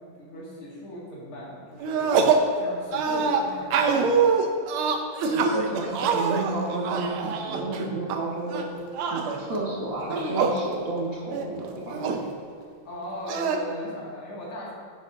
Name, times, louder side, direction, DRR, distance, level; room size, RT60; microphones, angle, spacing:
voice 1, 0.0-2.1 2.6-4.2 12.8-14.7, equal, 85° left, -6 dB, 2.9 m, -38 dB
sound 1, 1.8-2.5 2.9-8.2 8.5-9.4 10.0-10.6 11.0-11.1 11.3-12.2 13.3-13.6, right 5 dB, 90° right, 1.6 m, -24 dB
voice 2, 5.2-8.6 9.1-12.3, right 2 dB, 45° right, -4 dB, 1.6 m, -31 dB
10.5 x 8.0 x 2.6 m, 2.3 s
omnidirectional pair, 2.3 m